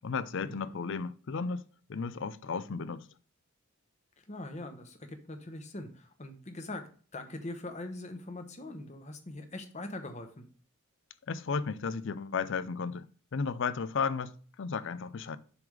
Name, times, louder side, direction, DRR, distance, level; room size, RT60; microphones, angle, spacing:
voice 1, 0.0-3.1 11.3-13.1 13.3-15.4, left 5 dB, 55° left, 0.4 m, -34 dB
voice 2, 4.3-10.4, left 2 dB, 30° left, 0.9 m, -42 dB
7.0 x 3.5 x 6.3 m
head